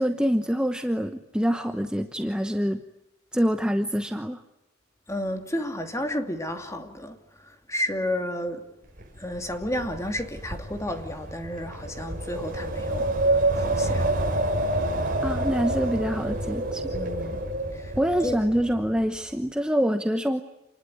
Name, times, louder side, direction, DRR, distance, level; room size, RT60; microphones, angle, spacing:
voice 1, 0.0-2.8 3.3-4.4 15.2-16.9 18.0-20.4, equal, 5° right, 1.0 m, -25 dB
voice 2, 5.1-8.7 9.2-14.1 16.9-17.4 17.7-18.0 18.2-18.4, left 1 dB, 15° left, 2.6 m, -32 dB
Wind, 9.0-19.1, right 1 dB, 45° right, 5.7 m, -28 dB
28.5 x 20.5 x 9.3 m
head